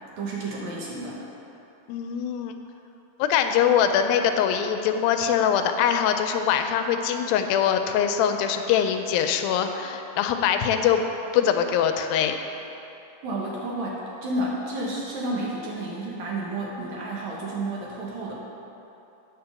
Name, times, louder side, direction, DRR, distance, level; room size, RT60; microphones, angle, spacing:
voice 1, 0.2-1.2 8.8-8.9 13.2-18.3, right 2 dB, 65° right, -4 dB, 2.1 m, -31 dB
voice 2, 1.9-2.6 3.2-12.4, left 8 dB, 85° left, 6 dB, 2.3 m, -23 dB
8.8 x 5.1 x 6.9 m, 3.0 s
omnidirectional pair, 4.1 m